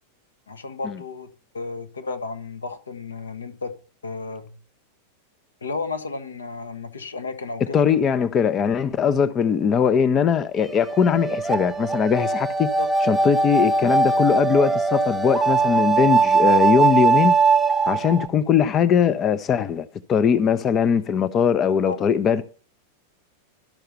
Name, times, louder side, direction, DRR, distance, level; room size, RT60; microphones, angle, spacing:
voice 1, 0.5-3.7 4.0-4.5 5.6-7.8 12.8-12.9 21.9-22.1, left 4 dB, 75° left, 1.2 m, -33 dB
voice 2, 7.7-12.7 13.0-17.4 17.9-22.4, left 7 dB, 30° left, 0.6 m, -20 dB
sound 1, 10.7-18.3, right 4 dB, 10° right, 0.8 m, -20 dB
12.0 x 5.6 x 6.9 m
figure-of-eight pair, 90°, 0 cm